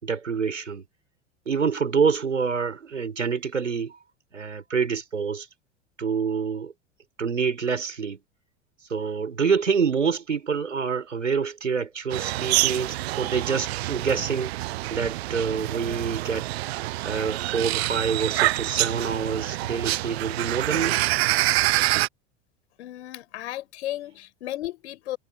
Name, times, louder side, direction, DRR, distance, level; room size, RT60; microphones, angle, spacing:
voice 1, 0.0-0.8 1.5-4.0 4.3-5.5 6.0-6.7 7.2-8.2 8.9-14.5 14.9-16.5 17.0-21.1, right 6 dB, 85° right, 5.3 m, -26 dB
sound 1, 12.1-22.1, right 18 dB, 60° right, 0.6 m, -26 dB
voice 2, 22.8-25.2, left 14 dB, 65° left, 6.2 m, -34 dB
figure-of-eight pair, 80°, 36 cm